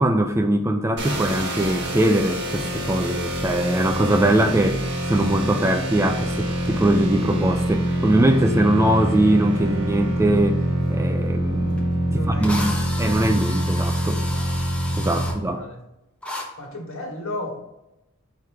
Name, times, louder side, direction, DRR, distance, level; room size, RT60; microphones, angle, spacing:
voice 1, 0.0-4.8 5.1-10.6 10.9-14.3 15.0-15.6, right 1 dB, 15° right, 6 dB, 0.3 m, -21 dB
sound 1, 1.0-15.3, right 1 dB, 55° right, 1.5 m, -25 dB
Drill, 11.8-11.9 12.4-15.4 16.2-16.5, left 1 dB, 5° left, 0.8 m, -33 dB
voice 2, 12.1-13.0 14.2-14.5 14.9-15.8 16.6-17.6, left 1 dB, 65° left, 1 dB, 1.5 m, -35 dB
6.4 x 4.6 x 3.5 m, 0.92 s
head